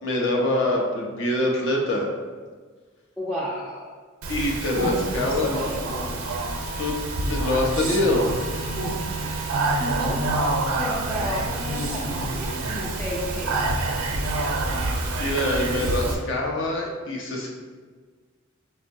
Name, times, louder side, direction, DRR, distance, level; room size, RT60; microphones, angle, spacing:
voice 1, 0.0-2.1 4.3-5.6 6.8-7.0 7.3-8.3 15.2-17.5, left 1 dB, 65° left, -1 dB, 0.7 m, -24 dB
voice 2, 3.2-3.9 5.2-6.4 9.1-13.7, equal, 5° left, -6 dB, 0.3 m, -33 dB
Speech, 4.2-16.1, right 2 dB, 75° right, 0.5 m, -27 dB
Wind instrument woodwind instrument, 6.3-10.8, right 1 dB, 90° left, 1.0 m, -40 dB
5.2 x 2.1 x 2.6 m, 1.5 s
head